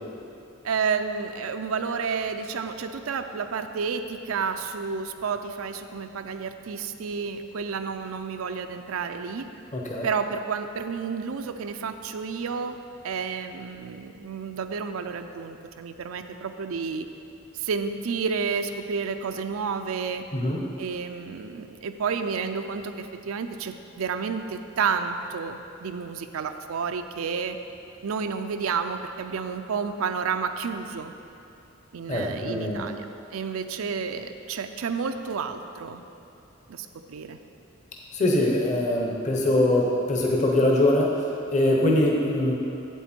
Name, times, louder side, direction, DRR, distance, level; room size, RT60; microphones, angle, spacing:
voice 1, 0.6-9.5 10.0-12.8 13.0-17.1 17.5-20.2 20.8-27.6 28.0-31.1 31.9-33.0 33.3-36.0 36.7-37.4, right 5 dB, 85° right, 7 dB, 0.4 m, -30 dB
voice 2, 9.7-10.1 20.3-20.7 32.1-32.8 38.1-42.5, left 1 dB, 35° left, -2 dB, 0.9 m, -23 dB
8.2 x 8.0 x 4.4 m, 2.7 s
head